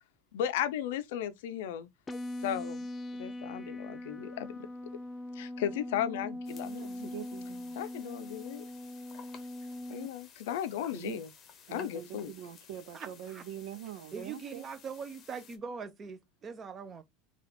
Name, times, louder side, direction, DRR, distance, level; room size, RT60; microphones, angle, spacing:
voice 1, 0.3-1.9 2.4-2.9 3.1-4.6 5.4-6.7 7.8-8.7 9.9-11.3 11.7-12.3, left 10 dB, 80° left, 0.6 m, -35 dB
sound 1, 2.1-10.1, left 1 dB, 15° left, 0.3 m, -41 dB
sound 2, 6.4-15.6, left 7 dB, 30° left, 0.8 m, -55 dB
voice 2, 6.6-7.8 9.1-9.3 9.6-9.7 10.9-11.2 11.7-14.7, right 10 dB, 70° right, 0.7 m, -44 dB
voice 3, 12.9-13.4 14.1-17.0, right 5 dB, 25° right, 0.7 m, -42 dB
4.1 x 2.5 x 4.2 m
supercardioid pair, 155°, 0 cm